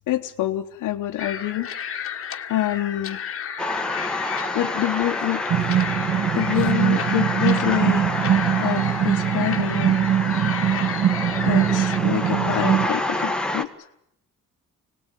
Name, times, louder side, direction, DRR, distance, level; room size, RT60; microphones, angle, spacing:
voice 1, 0.1-1.7 2.5-3.2 4.5-5.4 6.3-8.1 8.6-10.0 11.4-13.7, left 14 dB, 85° left, 3 dB, 1.1 m, -26 dB
sound 1, 1.2-12.0, left 8 dB, 45° left, 1.5 m, -32 dB
sound 2, 3.6-13.6, left 1 dB, 5° left, 1.8 m, -29 dB
sound 3, 5.5-12.9, right 10 dB, 55° right, 1.4 m, -22 dB
25.0 x 19.5 x 9.2 m, 0.79 s
cardioid pair, 90°, 30 cm